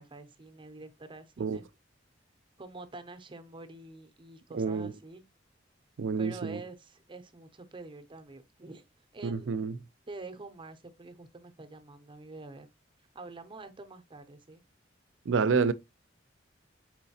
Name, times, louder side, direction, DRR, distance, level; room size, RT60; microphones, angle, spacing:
voice 1, 0.0-1.7 2.6-5.2 6.1-8.8 9.1-9.7 10.1-12.7 13.1-14.6, right 3 dB, 25° right, 0.6 m, -47 dB
voice 2, 4.5-4.9 6.0-6.6 9.2-9.7 15.3-15.7, right 5 dB, 75° right, 0.4 m, -28 dB
4.4 x 3.9 x 2.7 m
head